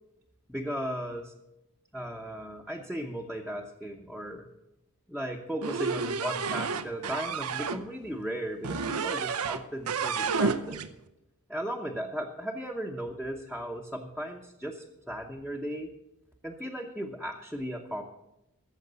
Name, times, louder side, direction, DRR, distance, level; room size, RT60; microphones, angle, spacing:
voice 1, 0.5-1.3 1.9-4.5 5.1-10.8 11.5-15.9 16.4-18.0, equal, ahead, -1 dB, 0.9 m, -36 dB
sound 1, 5.6-7.8 8.6-9.6 9.9-10.9, right 5 dB, 90° right, 0.7 m, -30 dB
14.0 x 7.3 x 6.9 m, 0.89 s
head